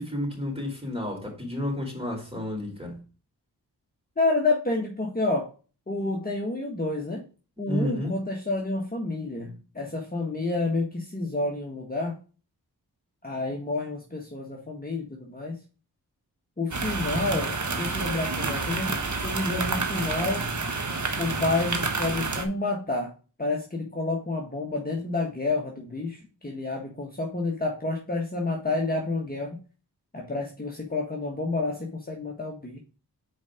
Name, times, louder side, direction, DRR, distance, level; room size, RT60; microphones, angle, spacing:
voice 1, 0.0-3.0 7.6-8.1, left 1 dB, 15° right, 4.2 m, -31 dB
voice 2, 4.2-5.5 5.9-7.2 7.6-12.2 13.2-15.6 16.6-20.4 21.2-23.1 23.4-29.6 30.1-32.8, left 2 dB, 20° left, 1.5 m, -29 dB
sound 1, 16.7-22.5, right 3 dB, 45° right, 1.4 m, -29 dB
5.2 x 4.9 x 5.0 m
cardioid pair, 45°, 42 cm